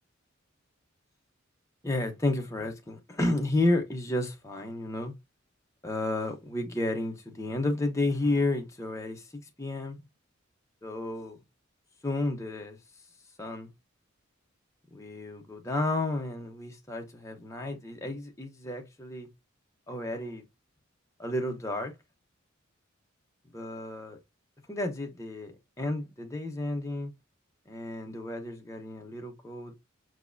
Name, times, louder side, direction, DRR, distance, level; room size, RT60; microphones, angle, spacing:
voice 1, 1.8-5.1 5.8-9.2 9.6-10.0 10.8-11.4 12.0-12.8 13.4-13.7 14.9-19.3 19.9-20.4 21.2-21.9 23.5-24.2 24.7-27.1 27.7-29.7, left 2 dB, 15° left, 0.9 m, -31 dB
5.9 x 2.7 x 2.6 m
head